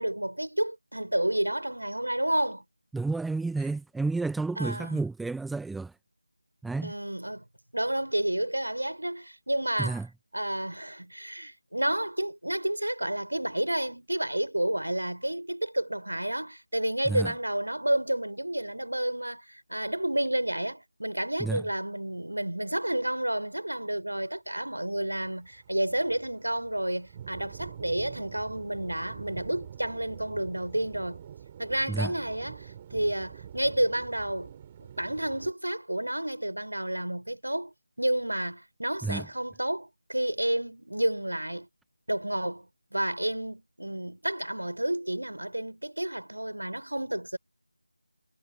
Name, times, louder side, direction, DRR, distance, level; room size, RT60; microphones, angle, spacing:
voice 1, 0.0-2.6 4.6-5.0 6.8-7.5 7.7-10.0 10.3-31.2 31.6-34.5 34.8-41.7 42.1-47.4, right 1 dB, 75° right, 5.3 m, -30 dB
voice 2, 2.9-5.9 6.6-6.9 9.8-10.1 17.1-17.3 21.4-21.6 31.9-32.1 39.0-39.3, right 3 dB, ahead, 1.1 m, -30 dB
sound 1, 24.8-35.5, right 9 dB, 15° right, 4.6 m, -46 dB
figure-of-eight pair, 165°, 0 cm